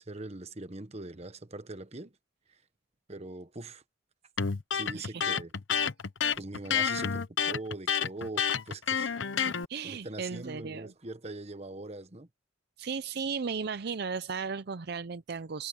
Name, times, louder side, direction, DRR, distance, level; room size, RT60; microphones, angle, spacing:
voice 1, 0.0-2.1 2.5-2.6 3.1-3.8 4.7-5.5 6.4-9.2 9.8-12.3, right 2 dB, 35° right, 1.3 m, -42 dB
Electric guitar, 4.4-9.7, left 7 dB, 75° left, 0.9 m, -29 dB
voice 2, 4.9-5.3 9.4-10.9 12.8-15.7, right 5 dB, 55° right, 0.5 m, -36 dB
head